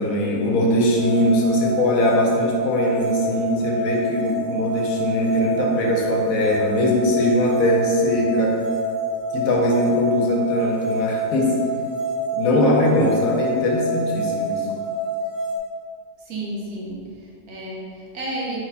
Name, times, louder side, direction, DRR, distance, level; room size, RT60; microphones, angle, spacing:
voice 1, 0.0-8.5 9.3-11.5 12.3-14.6, left 1 dB, 65° left, -2 dB, 1.1 m, -21 dB
sound 1, 1.0-15.6, right 1 dB, 5° right, 1.3 m, -27 dB
voice 2, 16.2-18.6, right 1 dB, 70° right, -4 dB, 1.4 m, -32 dB
4.6 x 4.0 x 2.8 m, 2.2 s
omnidirectional pair, 1.7 m